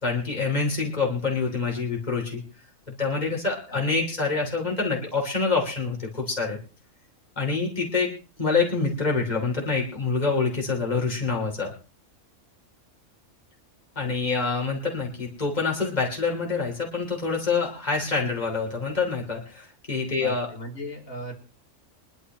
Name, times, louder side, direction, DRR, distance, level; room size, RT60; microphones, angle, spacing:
voice 1, 0.0-2.4 2.9-6.6 7.4-8.1 8.4-11.7 13.9-20.5, left 4 dB, 30° left, -1 dB, 3.3 m, -26 dB
voice 2, 20.2-21.3, left 1 dB, 90° left, 0 dB, 3.9 m, -37 dB
24.0 x 12.0 x 3.1 m, 0.35 s
omnidirectional pair, 1.4 m